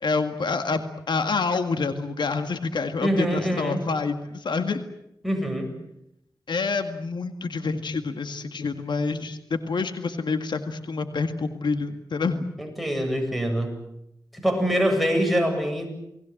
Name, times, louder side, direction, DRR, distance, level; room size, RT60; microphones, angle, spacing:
voice 1, 0.0-4.8 6.5-12.5, left 4 dB, 85° left, 8 dB, 2.0 m, -27 dB
voice 2, 3.0-3.8 5.2-5.7 12.6-13.8 14.3-15.9, equal, ahead, 5 dB, 8.0 m, -24 dB
29.5 x 20.5 x 7.9 m, 0.81 s
wide cardioid pair, 75°, 8 cm